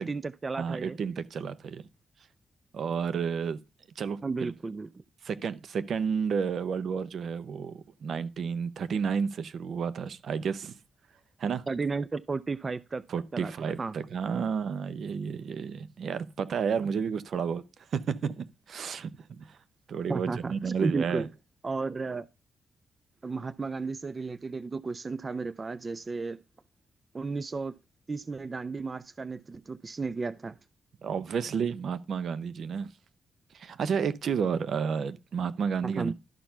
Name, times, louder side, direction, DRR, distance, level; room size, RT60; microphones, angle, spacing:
voice 1, 0.0-1.0 4.2-5.0 11.7-13.0 13.3-13.5 13.8-13.9 20.1-21.3 21.6-22.3 23.2-26.4 27.1-27.8 28.1-30.6 35.8-36.1, right 4 dB, 35° right, 0.4 m, -33 dB
voice 2, 0.6-1.8 2.7-3.6 4.0-4.5 5.2-10.7 11.4-11.6 13.1-17.6 17.9-19.6 19.9-21.3 31.0-32.9 33.5-36.1, right 6 dB, 70° right, 0.8 m, -31 dB
12.0 x 4.5 x 5.7 m
cardioid pair, 65°, 0 cm